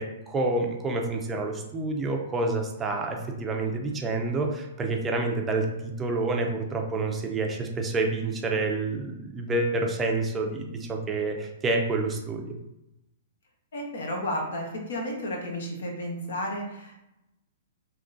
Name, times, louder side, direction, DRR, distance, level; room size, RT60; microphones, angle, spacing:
voice 1, 0.0-12.6, right 2 dB, 15° right, 1 dB, 0.4 m, -28 dB
voice 2, 13.7-17.1, equal, 75° left, 0 dB, 1.1 m, -32 dB
3.6 x 2.8 x 2.6 m, 0.88 s
hypercardioid pair, 155°, 0 cm